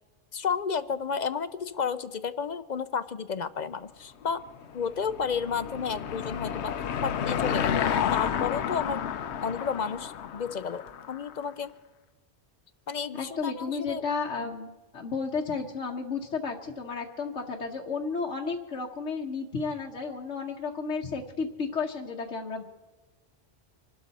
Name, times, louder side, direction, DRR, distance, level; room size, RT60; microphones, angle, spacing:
voice 1, 0.3-4.4 4.7-6.7 7.0-7.8 8.1-9.0 9.4-11.7 12.9-14.0 14.4-14.5, left 6 dB, 50° left, 13 dB, 0.6 m, -32 dB
Car passing by / Engine, 4.5-11.3, left 8 dB, 70° left, 0.9 m, -31 dB
voice 2, 13.1-22.6, left 4 dB, 90° left, 0 dB, 1.4 m, -33 dB
27.0 x 12.5 x 4.1 m, 1.2 s
omnidirectional pair, 1.2 m